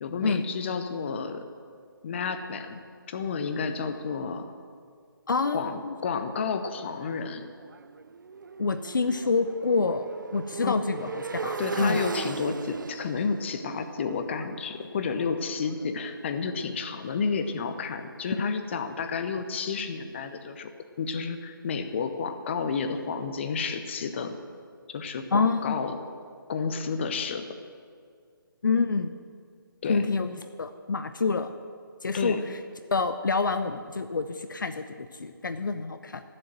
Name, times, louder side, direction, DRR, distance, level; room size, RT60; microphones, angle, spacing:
voice 1, 0.0-1.5 2.0-2.8 3.1-4.5 5.5-7.5 10.6-10.7 11.6-20.7 21.0-24.4 24.9-26.0 26.5-27.5 29.8-30.1 32.1-32.4, left 5 dB, 30° left, 8 dB, 0.8 m, -31 dB
voice 2, 5.3-5.9 8.6-12.0 25.3-25.8 28.6-29.1 29.9-31.5 32.0-32.6 32.9-36.2, left 4 dB, 60° left, 9 dB, 0.6 m, -27 dB
Motorcycle, 6.3-16.2, right 5 dB, 60° right, 0.4 m, -38 dB
13.5 x 7.7 x 7.6 m, 2.1 s
figure-of-eight pair, 150°, 12 cm